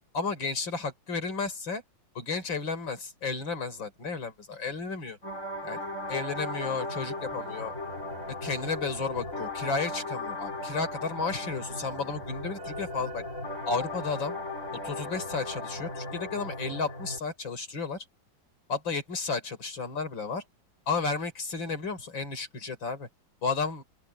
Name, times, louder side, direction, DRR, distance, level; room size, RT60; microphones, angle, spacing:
voice 1, 0.1-1.8 2.1-5.2 5.6-5.8 6.1-7.7 8.4-13.2 13.7-14.4 14.8-18.0 18.7-20.4 20.9-23.1 23.4-23.8, left 4 dB, 85° left, 4.9 m, -32 dB
sound 1, 5.2-17.2, left 2 dB, 40° left, 5.8 m, -37 dB
open air
omnidirectional pair, 2.0 m